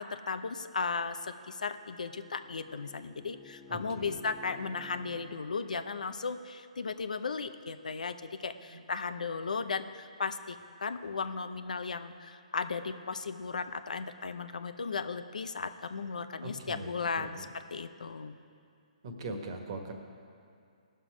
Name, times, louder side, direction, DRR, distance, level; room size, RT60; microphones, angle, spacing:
voice 1, 0.0-8.2 8.4-17.5 17.7-18.4, left 4 dB, 80° left, 10 dB, 0.7 m, -36 dB
Bowed string instrument, 1.4-5.5, left 3 dB, 15° left, 1.6 m, -53 dB
voice 2, 3.7-4.2 8.7-8.8 16.4-17.4 19.0-19.9, right 2 dB, 45° right, 4 dB, 1.5 m, -41 dB
18.5 x 6.7 x 5.0 m, 2.4 s
hypercardioid pair, 145°, 4 cm